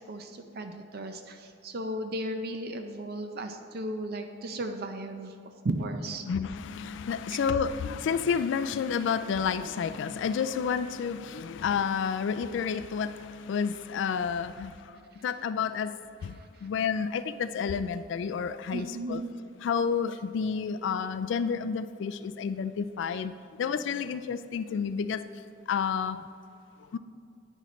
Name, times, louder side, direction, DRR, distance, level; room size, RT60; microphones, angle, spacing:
voice 1, 0.1-5.3 5.6-6.2 16.6-16.7 18.7-19.3, right 1 dB, 55° right, 6 dB, 0.6 m, -35 dB
voice 2, 6.2-19.2 19.6-23.3 23.6-25.2 25.7-26.2 26.9-27.0, left 6 dB, 65° left, 12 dB, 0.3 m, -30 dB
9.7 x 9.0 x 3.1 m, 2.5 s
head